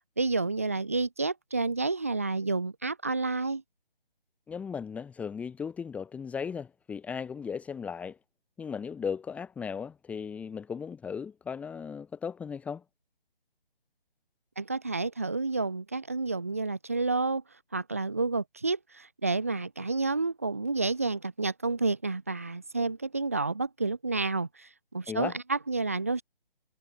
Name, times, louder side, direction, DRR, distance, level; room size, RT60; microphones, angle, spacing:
voice 1, 0.2-3.6 14.6-17.4 17.7-26.2, right 3 dB, 15° right, 0.5 m, -30 dB
voice 2, 4.5-8.2 8.6-12.8 25.1-25.4, left 6 dB, 5° left, 2.4 m, -36 dB
figure-of-eight pair, 150°, 29 cm